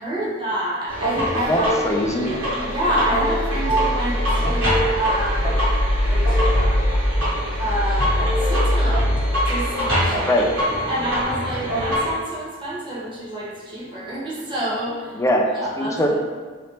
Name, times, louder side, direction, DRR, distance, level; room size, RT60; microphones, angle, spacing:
voice 1, 0.0-1.6 2.6-5.6 6.0-6.8 7.6-9.2 9.5-10.4 10.9-15.2 15.5-16.2, right 1 dB, 25° right, -7 dB, 0.8 m, -27 dB
sound 1, 0.9-12.1, equal, 70° right, 1.4 m, -22 dB
voice 2, 1.5-2.4 10.2-10.5 15.2-15.5 15.8-16.2, equal, 15° left, 1 dB, 0.3 m, -21 dB
3.2 x 2.9 x 2.9 m, 1.5 s
head